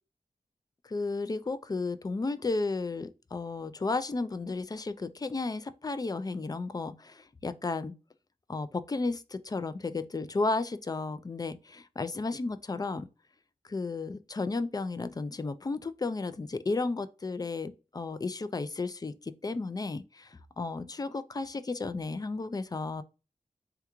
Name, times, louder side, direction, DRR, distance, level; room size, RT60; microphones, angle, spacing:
voice 1, 0.8-7.9 8.5-13.0 13.7-23.0, left 3 dB, 25° left, 0.3 m, -33 dB
3.4 x 2.3 x 2.9 m
wide cardioid pair, 65°, 15 cm